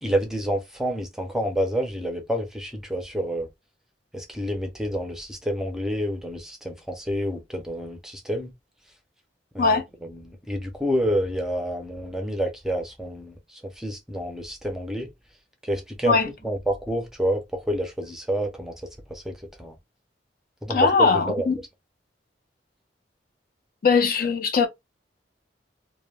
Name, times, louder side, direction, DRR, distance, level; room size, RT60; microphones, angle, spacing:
voice 1, 0.0-3.5 4.1-8.5 9.5-9.8 10.3-15.1 15.6-16.2 16.4-18.7 19.1-19.8 20.6-20.9 21.3-21.4, equal, 5° right, 0.5 m, -28 dB
voice 2, 20.7-21.6 23.8-24.7, left 5 dB, 55° left, 0.4 m, -20 dB
2.2 x 2.1 x 3.1 m
head